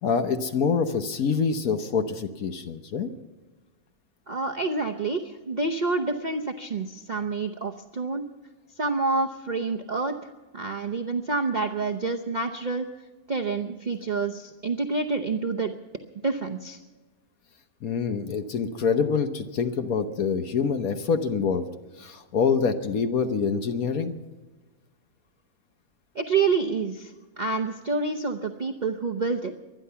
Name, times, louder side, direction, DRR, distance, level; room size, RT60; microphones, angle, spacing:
voice 1, 0.0-3.1 17.8-21.6 22.0-24.2, left 5 dB, 70° left, 8 dB, 1.4 m, -26 dB
voice 2, 4.3-8.2 8.8-12.8 13.3-15.7 16.2-16.8 26.1-29.5, right 4 dB, 35° right, 3 dB, 0.8 m, -28 dB
23.5 x 10.5 x 5.7 m, 1.3 s
omnidirectional pair, 1.6 m